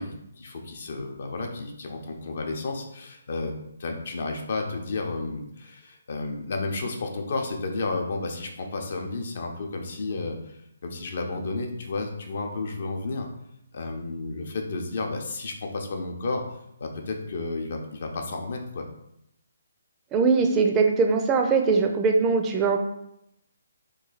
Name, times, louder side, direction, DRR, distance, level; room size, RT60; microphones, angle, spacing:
voice 1, 0.0-3.5 3.8-13.3 13.7-16.4 16.8-18.8, left 3 dB, 55° left, 3 dB, 0.6 m, -32 dB
voice 2, 20.1-22.8, right 4 dB, 20° right, 4 dB, 0.4 m, -21 dB
3.1 x 2.3 x 3.9 m, 0.81 s
figure-of-eight pair, 145°, 0 cm